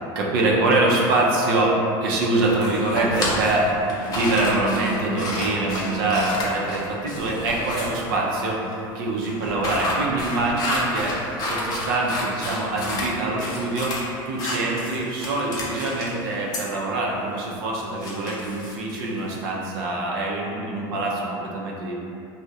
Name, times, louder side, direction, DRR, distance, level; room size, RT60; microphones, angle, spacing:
voice 1, 0.2-3.7 4.0-13.9 14.3-21.9, right 2 dB, 85° right, -3 dB, 0.5 m, -24 dB
sound 1, 2.5-8.1 9.2-13.1 13.4-14.0 14.4-16.2 16.5-16.6 17.7-19.3, left 1 dB, 35° left, 0.5 m, -30 dB
2.3 x 2.1 x 2.6 m, 2.7 s
supercardioid pair, 110°, 11 cm